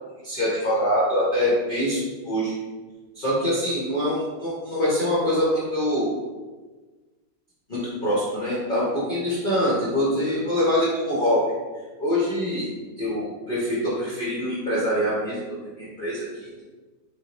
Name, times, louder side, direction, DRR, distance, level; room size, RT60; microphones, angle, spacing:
voice 1, 0.2-2.5 3.1-6.1 7.7-11.4 12.0-12.7 13.0-15.4 15.8-16.5, equal, 40° left, -7 dB, 0.7 m, -24 dB
3.7 x 3.7 x 3.0 m, 1.3 s
omnidirectional pair, 2.2 m